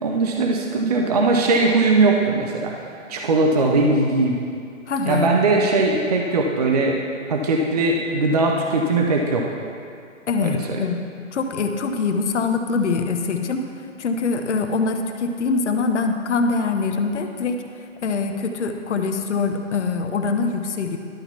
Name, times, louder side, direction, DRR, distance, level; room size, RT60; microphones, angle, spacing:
voice 1, 0.0-2.8 3.1-4.4 5.1-7.0 7.3-9.5 10.4-10.8, right 3 dB, 30° right, 1 dB, 0.5 m, -20 dB
voice 2, 4.9-5.3 10.3-11.0 11.3-13.6 14.0-17.6 18.0-21.0, left 4 dB, 60° left, 5 dB, 0.9 m, -23 dB
11.5 x 3.9 x 7.1 m, 2.4 s
hypercardioid pair, 155°, 39 cm